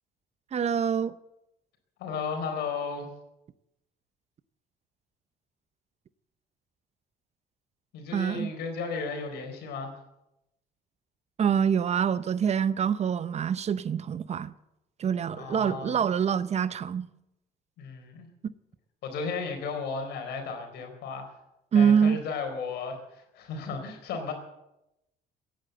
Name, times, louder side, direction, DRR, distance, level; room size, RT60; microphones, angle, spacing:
voice 1, 0.5-1.1 8.1-8.5 11.4-14.5 15.0-17.1 21.7-22.2, right 7 dB, 40° right, 0.7 m, -25 dB
voice 2, 2.0-3.1 7.9-9.9 15.3-16.1 17.8-18.3 19.0-21.3 21.7-24.3, left 5 dB, 75° left, 4.2 m, -34 dB
16.0 x 10.5 x 7.9 m
cardioid pair, 110°, 17 cm